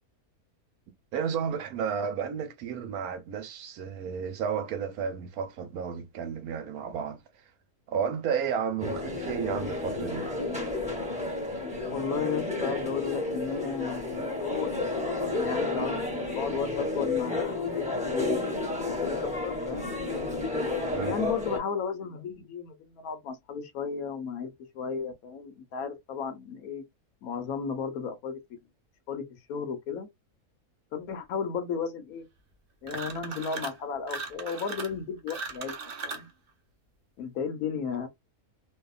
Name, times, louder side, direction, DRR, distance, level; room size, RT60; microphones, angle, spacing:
voice 1, 1.1-7.2 7.9-10.3 20.9-21.2, right 7 dB, 75° right, 1.1 m, -32 dB
sound 1, 8.8-21.6, left 2 dB, 5° right, 0.8 m, -31 dB
voice 2, 11.9-14.8 15.2-19.2 19.4-19.9 21.0-26.8 27.2-28.4 29.1-30.1 30.9-32.3 32.8-35.7 36.0-36.3 37.2-38.1, left 6 dB, 70° left, 1.1 m, -34 dB
sound 2, 32.8-33.8 34.1-36.3, right 4 dB, 60° right, 0.6 m, -38 dB
2.7 x 2.3 x 2.3 m
omnidirectional pair, 1.6 m